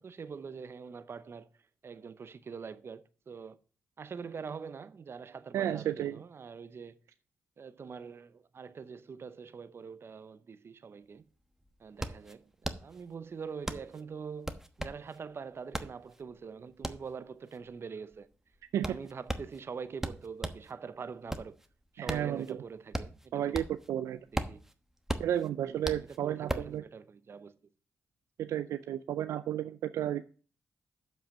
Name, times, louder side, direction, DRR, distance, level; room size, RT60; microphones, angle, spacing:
voice 1, 0.0-1.5 1.8-3.6 4.0-7.0 7.6-11.2 11.8-18.3 18.8-21.6 21.9-23.6 24.3-24.7 25.7-27.6, right 5 dB, 55° right, 0.8 m, -44 dB
voice 2, 5.5-6.2 18.7-19.0 22.0-22.6 23.3-24.2 25.2-26.8 28.4-30.2, right 11 dB, 80° right, 0.3 m, -32 dB
sound 1, 11.0-11.1 11.4-20.7 21.1-23.9 24.2-26.8, right 1 dB, 10° right, 1.1 m, -38 dB
7.5 x 5.6 x 7.1 m
supercardioid pair, 50°, 5 cm